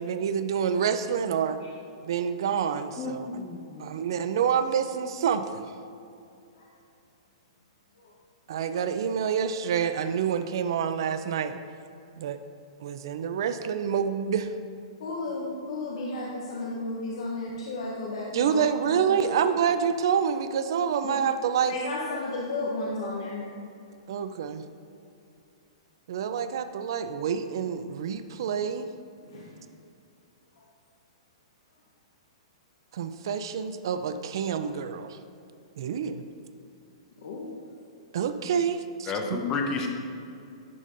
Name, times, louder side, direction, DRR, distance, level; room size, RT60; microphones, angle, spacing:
voice 1, 0.0-1.6 2.0-3.3 3.8-5.6 8.5-11.5 12.2-12.4 12.8-14.5 18.3-21.7 24.1-24.6 26.1-28.9 32.9-35.2 35.8-36.2 38.1-39.1, right 7 dB, 50° right, 10 dB, 0.3 m, -27 dB
voice 2, 3.0-3.9 39.1-39.9, left 4 dB, 15° left, 3 dB, 0.5 m, -31 dB
voice 3, 15.0-19.3 21.0-21.2 21.7-23.4 29.3-29.6 37.2-37.5, left 2 dB, 55° left, -4 dB, 0.8 m, -33 dB
10.5 x 5.1 x 2.5 m, 2.6 s
hypercardioid pair, 175°, 3 cm